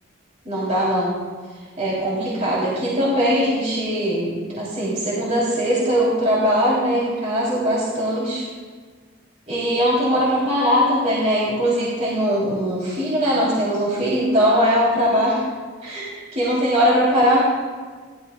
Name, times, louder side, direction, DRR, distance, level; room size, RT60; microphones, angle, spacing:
voice 1, 0.4-1.2 1.8-8.5 9.5-15.4 15.8-17.4, equal, 35° right, -7 dB, 3.0 m, -20 dB
27.0 x 11.5 x 2.2 m, 1.5 s
head